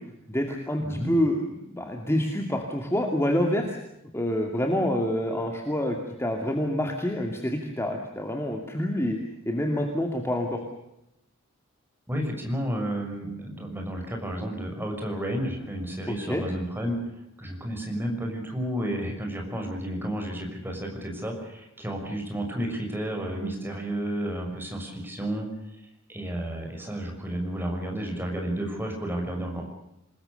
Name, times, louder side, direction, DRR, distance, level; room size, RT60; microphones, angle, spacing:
voice 1, 0.3-3.8 4.1-9.2 9.5-10.6 16.1-16.4, left 1 dB, 10° left, 2 dB, 2.5 m, -27 dB
voice 2, 12.1-17.0 17.4-25.5 26.1-29.7, right 1 dB, 10° right, 2 dB, 6.3 m, -31 dB
27.5 x 20.0 x 6.7 m, 0.84 s
head